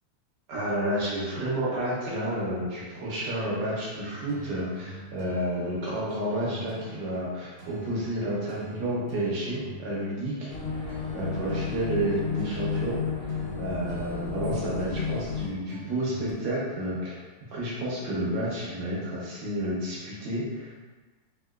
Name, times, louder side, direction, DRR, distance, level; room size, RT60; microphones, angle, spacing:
voice 1, 0.5-13.2 13.6-17.2 17.5-20.7, right 1 dB, 70° right, -6 dB, 1.3 m, -30 dB
sound 1, 3.9-16.3, right 1 dB, 85° right, 1.5 m, -46 dB
sound 2, 10.5-15.5, left 5 dB, 85° left, 0.7 m, -32 dB
3.5 x 2.6 x 2.3 m, 1.3 s
omnidirectional pair, 2.2 m